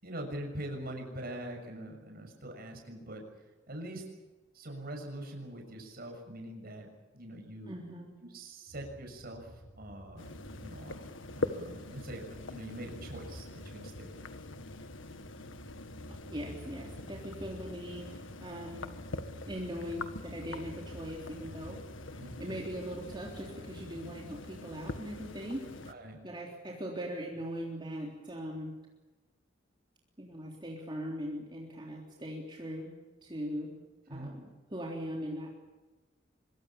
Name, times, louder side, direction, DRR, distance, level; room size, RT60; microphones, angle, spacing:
voice 1, 0.0-3.2 3.7-4.0 4.5-7.8 8.2-10.3 10.6-11.0 11.3-14.3 22.2-22.5 25.9-26.2 34.1-34.3, right 1 dB, 55° right, 3 dB, 6.7 m, -43 dB
voice 2, 7.7-8.1 16.3-18.9 19.5-21.8 22.4-25.9 26.2-28.7 30.2-32.9 33.2-33.7 34.1-35.5, equal, 25° right, -2 dB, 3.5 m, -40 dB
sound 1, 8.7-25.5, equal, 85° right, 5.3 m, -52 dB
sound 2, 10.2-25.9, left 2 dB, 80° left, 1.6 m, -43 dB
25.0 x 23.0 x 7.2 m, 1.2 s
head